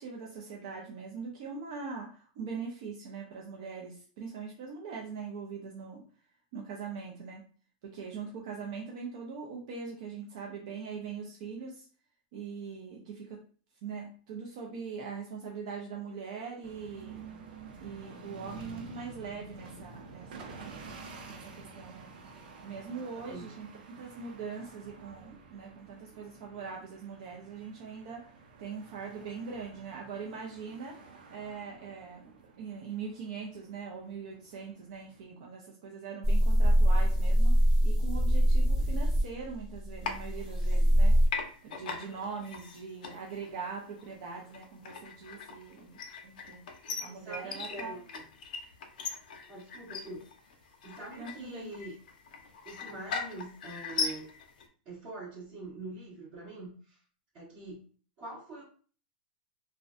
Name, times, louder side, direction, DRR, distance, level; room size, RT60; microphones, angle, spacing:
voice 1, 0.0-6.0 6.5-7.5 7.8-11.9 12.3-13.4 13.8-17.2 17.8-20.8 21.3-22.1 22.6-28.3 28.6-41.2 41.6-47.9 51.2-51.7, right 5 dB, 40° right, -1 dB, 0.5 m, -42 dB
sound 1, 16.6-35.2, right 4 dB, 90° right, 0.6 m, -50 dB
voice 2, 23.2-23.5 41.8-42.2 46.8-48.2 49.5-50.3 50.8-51.9 52.6-54.3 54.8-57.0 57.3-57.8 58.2-58.6, right 2 dB, 25° right, -12 dB, 1.3 m, -44 dB
sound 2, 36.2-41.3, equal, 5° right, 1.4 m, -23 dB
sound 3, 40.0-41.0 41.3-54.6, left 5 dB, 65° left, 0.5 m, -40 dB
2.5 x 2.1 x 2.5 m, 0.42 s
supercardioid pair, 180°, 5 cm